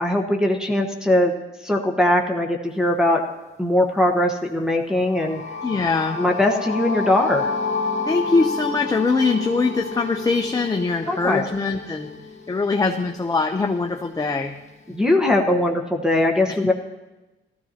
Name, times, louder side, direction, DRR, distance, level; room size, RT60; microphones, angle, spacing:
voice 1, 0.0-1.3 1.6-3.2 3.6-5.4 6.2-7.5 11.1-11.4 14.9-16.7, left 1 dB, 5° right, 0 dB, 1.2 m, -20 dB
sound 1, 4.9-12.9, left 4 dB, 35° left, 1.5 m, -30 dB
voice 2, 5.6-6.2 8.1-12.1 12.5-14.5 16.6-16.7, left 4 dB, 20° left, 3 dB, 0.7 m, -22 dB
15.5 x 14.0 x 2.9 m, 1.1 s
cardioid pair, 90°, 20 cm